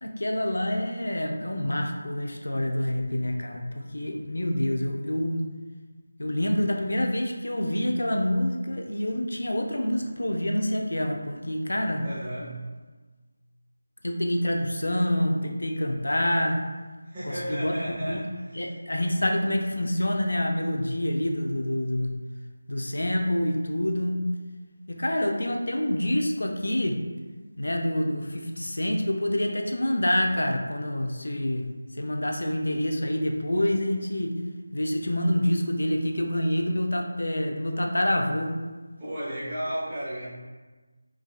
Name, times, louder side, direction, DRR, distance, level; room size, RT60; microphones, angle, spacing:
voice 1, 0.0-5.4 6.2-12.1 14.0-16.6 17.2-17.7 18.0-18.3 18.5-22.1 22.7-24.2 24.9-27.0 27.6-31.7 31.9-34.4 34.7-38.6, left 1 dB, 85° left, 3 dB, 0.5 m, -27 dB
voice 2, 12.0-12.6 17.0-18.7 39.0-40.2, equal, 15° right, -15 dB, 0.8 m, -34 dB
4.7 x 2.3 x 2.3 m, 1.3 s
figure-of-eight pair, 175°, 0 cm